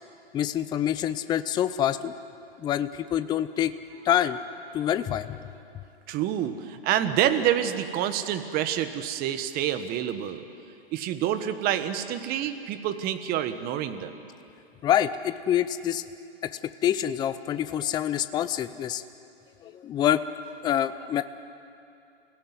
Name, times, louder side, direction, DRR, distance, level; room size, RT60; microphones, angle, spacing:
voice 1, 0.3-2.2 2.6-3.7 4.0-4.4 4.7-5.3 14.8-16.0 16.4-19.0 19.6-20.2 20.6-21.2, left 11 dB, 15° left, 12 dB, 0.5 m, -26 dB
voice 2, 6.1-10.4 10.9-14.2, right 10 dB, 30° right, 10 dB, 1.5 m, -27 dB
28.0 x 16.5 x 9.7 m, 2.6 s
hypercardioid pair, 130°, 31 cm